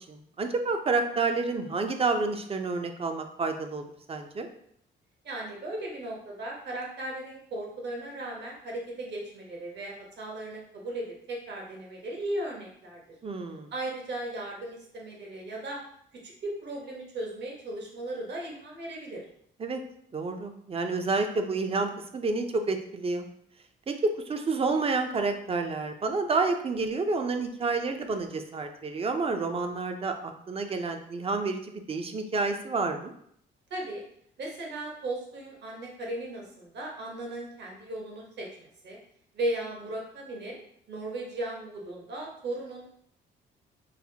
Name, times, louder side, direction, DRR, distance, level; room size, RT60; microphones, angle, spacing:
voice 1, 0.1-4.5 13.2-13.7 19.6-19.8 20.1-23.3 23.9-33.1, right 3 dB, 30° right, 6 dB, 0.5 m, -29 dB
voice 2, 5.2-13.0 13.7-15.8 16.2-19.2 33.7-34.0 34.4-39.0 39.3-40.6 40.9-42.9, right 1 dB, 60° right, -2 dB, 1.1 m, -36 dB
5.7 x 2.1 x 2.7 m, 0.68 s
cardioid pair, 90°, 20 cm